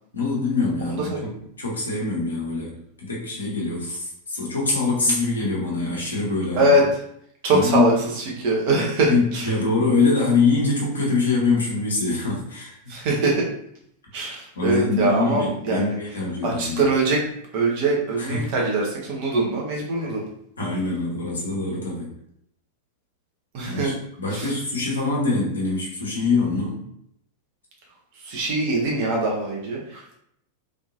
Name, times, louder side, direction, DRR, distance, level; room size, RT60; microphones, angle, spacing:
voice 1, 0.1-1.3 1.6-6.7 7.5-7.9 9.1-12.8 14.5-16.8 18.2-18.5 20.0-20.2 20.6-22.1 23.6-26.8, left 3 dB, 75° left, -4 dB, 1.1 m, -24 dB
voice 2, 7.4-7.9 8.4-9.5 12.9-13.4 14.1-16.0 16.4-17.2 17.5-20.2 23.5-23.9 24.3-24.5 28.2-30.1, right 2 dB, 45° right, -2 dB, 1.0 m, -22 dB
3.5 x 2.7 x 2.6 m, 0.72 s
figure-of-eight pair, 90°, 0 cm